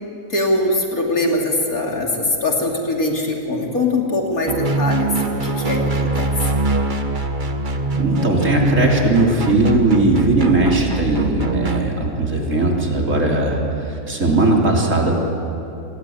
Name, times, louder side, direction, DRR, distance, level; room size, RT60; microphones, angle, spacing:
voice 1, 0.3-6.3, left 2 dB, 60° left, 0 dB, 3.7 m, -22 dB
sound 1, 4.5-11.9, right 3 dB, 30° right, 1.4 m, -23 dB
voice 2, 8.0-13.6 13.9-15.1, right 2 dB, 50° right, -1 dB, 4.0 m, -18 dB
27.0 x 19.5 x 9.6 m, 2.8 s
omnidirectional pair, 1.7 m